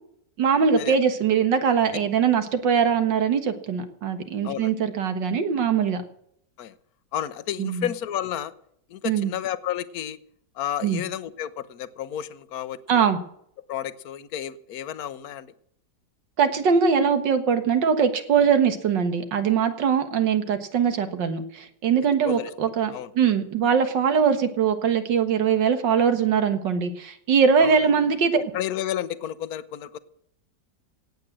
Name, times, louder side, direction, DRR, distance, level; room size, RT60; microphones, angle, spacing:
voice 1, 0.4-6.0 7.6-7.9 9.0-9.3 10.8-11.0 12.9-13.2 16.4-28.4, right 6 dB, 90° right, 9 dB, 2.2 m, -22 dB
voice 2, 7.1-8.5 8.9-10.2 10.5-13.1 13.7-15.5 22.2-22.5 22.9-23.1 27.6-27.7 28.3-30.0, left 11 dB, 60° left, 15 dB, 1.3 m, -31 dB
17.0 x 8.5 x 7.5 m, 0.69 s
omnidirectional pair, 1.9 m